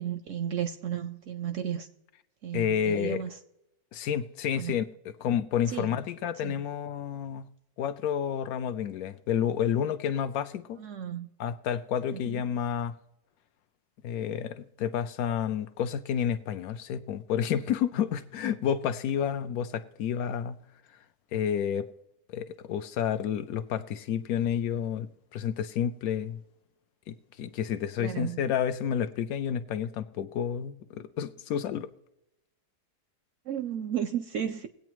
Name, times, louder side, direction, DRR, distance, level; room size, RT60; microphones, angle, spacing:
voice 1, 0.0-1.9 2.4-3.4 4.6-4.7 5.7-5.9 6.4-6.6 10.8-11.3 12.1-12.4 28.0-28.4 33.5-34.7, right 9 dB, 70° right, 0.7 m, -33 dB
voice 2, 2.5-3.2 3.9-4.9 5.2-7.5 7.8-10.8 11.4-12.9 14.0-20.6 21.3-21.9 22.3-26.4 27.1-31.9, left 8 dB, 75° left, 1.0 m, -30 dB
21.0 x 8.4 x 3.0 m
omnidirectional pair, 1.7 m